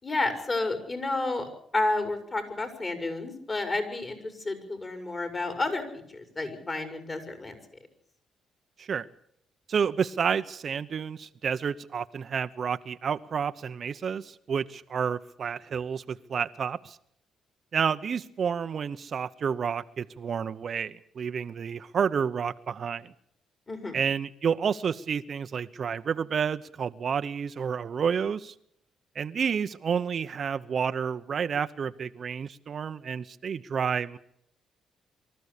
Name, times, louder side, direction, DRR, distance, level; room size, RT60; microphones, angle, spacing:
voice 1, 0.0-4.2 4.4-7.6 23.7-24.0, left 2 dB, 30° left, 6 dB, 5.9 m, -31 dB
voice 2, 9.7-17.0 17.7-23.1 23.9-28.5 29.1-34.2, right 7 dB, 50° right, 11 dB, 0.8 m, -30 dB
24.5 x 14.0 x 8.4 m, 0.69 s
cardioid pair, 90°, 0 cm